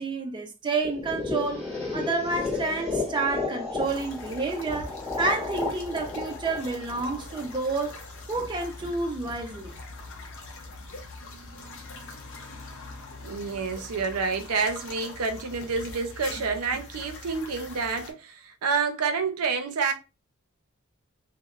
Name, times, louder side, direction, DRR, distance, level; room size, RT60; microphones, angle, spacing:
voice 1, 0.0-8.0 8.3-9.8, right 3 dB, 20° right, 0.3 m, -29 dB
sound 1, 0.8-7.7, left 3 dB, 15° left, 1.4 m, -33 dB
sound 2, 3.8-18.1, left 2 dB, 60° left, 0.6 m, -42 dB
voice 2, 13.2-19.9, right 5 dB, 85° right, 0.5 m, -28 dB
2.9 x 2.0 x 2.4 m
head